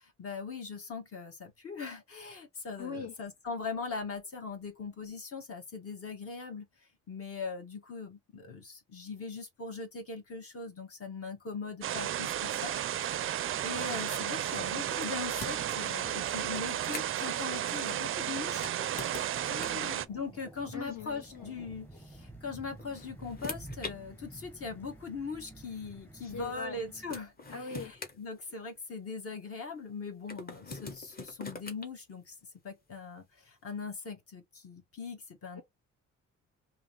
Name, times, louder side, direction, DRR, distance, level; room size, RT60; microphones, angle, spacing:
voice 1, 0.2-6.7 7.1-12.8 13.2-18.7 20.1-21.9 22.4-32.3 32.6-33.2 33.6-35.6, left 4 dB, 50° left, 1.6 m, -40 dB
voice 2, 2.8-3.1 19.5-20.1 20.7-21.6 26.2-26.8 27.5-27.9, left 5 dB, 65° left, 2.0 m, -42 dB
sound 1, 11.8-20.1, right 11 dB, 45° right, 0.4 m, -33 dB
sound 2, 14.9-15.8 16.5-17.3 18.5-19.9 21.2-21.4 22.5-24.0 24.9-25.0 26.6-26.7 27.1-28.9 30.3-31.9, left 3 dB, 30° left, 1.3 m, -43 dB
sound 3, 17.9-27.2, right 1 dB, 5° left, 1.0 m, -51 dB
3.6 x 2.9 x 3.2 m
cardioid pair, 90°, 30 cm